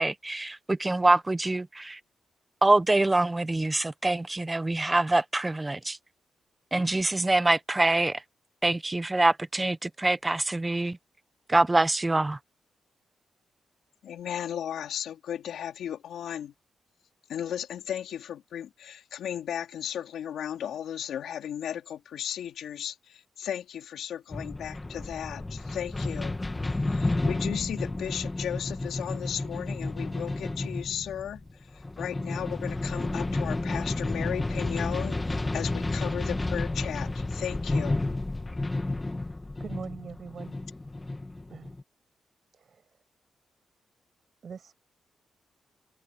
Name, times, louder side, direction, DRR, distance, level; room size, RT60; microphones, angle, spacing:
voice 1, 0.0-2.0 2.6-6.0 6.7-8.2 8.6-11.0 11.5-12.4, right 2 dB, 20° right, 1.0 m, -25 dB
voice 2, 14.0-16.5 17.3-31.4 31.7-38.0, left 9 dB, 85° left, 4.1 m, -35 dB
sound 1, 24.3-41.8, left 2 dB, 20° left, 1.8 m, -31 dB
voice 3, 39.6-40.5 41.5-41.7 42.5-42.8 44.4-44.7, right 6 dB, 55° right, 7.8 m, -42 dB
open air
cardioid pair, 85°, 0 cm